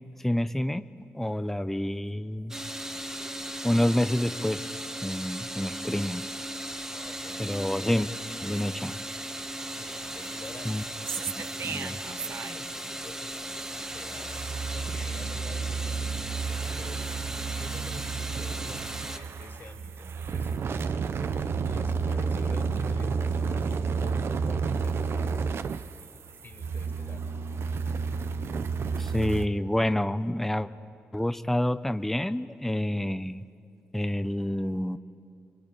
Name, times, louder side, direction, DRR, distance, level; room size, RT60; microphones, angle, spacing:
voice 1, 0.2-0.9 1.1-2.6 3.6-4.7 5.0-6.2 7.4-8.1 8.4-9.0 10.7-10.8 11.4-12.0 29.0-30.7 31.1-33.4 33.9-35.0, left 1 dB, 5° left, 12 dB, 0.7 m, -28 dB
sound 1, 2.5-19.2, right 1 dB, 10° right, 1.7 m, -37 dB
voice 2, 6.9-7.5 9.7-10.7 11.8-14.4 14.6-17.0 17.5-27.3, left 3 dB, 50° left, 3 dB, 4.0 m, -49 dB
sound 2, 9.6-12.8 13.1-29.5, right 5 dB, 65° right, 0.8 m, -32 dB
26.0 x 23.0 x 8.9 m, 2.5 s
cardioid pair, 70°, 4 cm